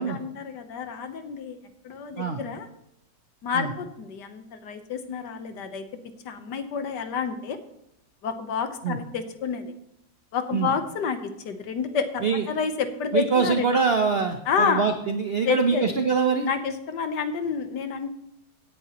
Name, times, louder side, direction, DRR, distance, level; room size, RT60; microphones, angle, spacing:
voice 1, 0.0-1.6 1.8-2.7 3.4-5.8 6.2-7.6 8.2-9.7 10.3-13.7 14.5-14.8 15.4-15.9 16.4-18.1, left 6 dB, 65° left, 8 dB, 1.5 m, -29 dB
voice 2, 13.1-16.5, right 5 dB, 65° right, 6 dB, 0.6 m, -24 dB
16.5 x 9.9 x 3.0 m, 0.79 s
omnidirectional pair, 2.1 m